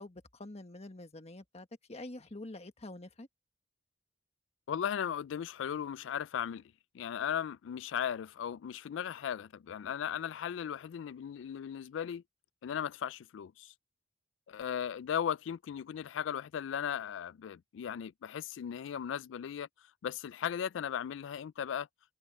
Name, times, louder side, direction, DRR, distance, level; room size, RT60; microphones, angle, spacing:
voice 1, 0.0-3.3, left 2 dB, 35° left, 1.5 m, -46 dB
voice 2, 4.7-6.6 6.9-12.2 12.6-13.7 14.5-19.7 20.0-21.9, left 8 dB, 75° left, 0.3 m, -37 dB
head